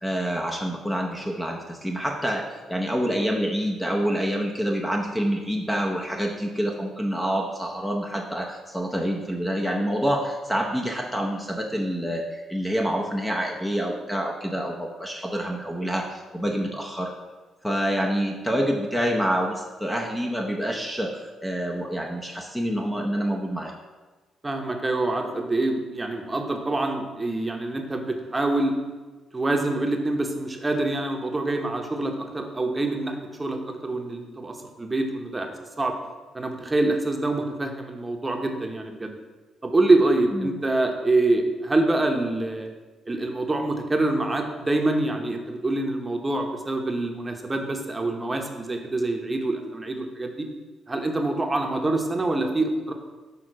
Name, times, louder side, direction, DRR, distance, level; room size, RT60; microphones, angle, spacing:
voice 1, 0.0-17.1 17.6-23.7 40.3-40.5, equal, 5° left, 1 dB, 0.7 m, -27 dB
voice 2, 24.4-28.7 29.3-35.5 35.8-35.9 36.3-39.1 39.6-42.7 43.1-50.5 50.9-52.9, right 2 dB, 20° right, 3 dB, 0.9 m, -25 dB
6.4 x 3.8 x 6.1 m, 1.3 s
cardioid pair, 90°, 0 cm